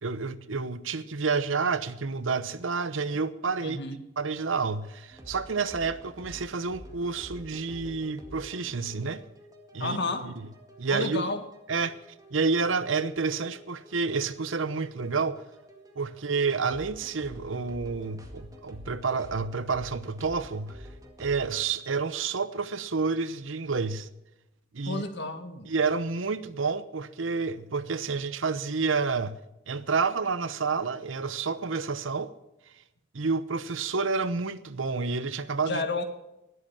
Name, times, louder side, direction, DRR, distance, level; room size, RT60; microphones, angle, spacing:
voice 1, 0.0-3.8 4.2-9.2 9.7-10.0 10.2-10.3 10.8-11.3 11.7-12.0 12.3-15.4 16.0-20.8 21.2-24.1 24.7-25.0 25.6-29.4 29.7-32.3 33.1-35.8, right 4 dB, 85° right, 0.9 m, -29 dB
voice 2, 3.6-4.0 9.8-10.3 10.9-11.4 24.9-25.7 35.7-36.0, left 2 dB, 60° left, 1.8 m, -31 dB
sound 1, 5.1-21.7, equal, 20° right, 1.9 m, -49 dB
19.5 x 7.9 x 7.3 m
head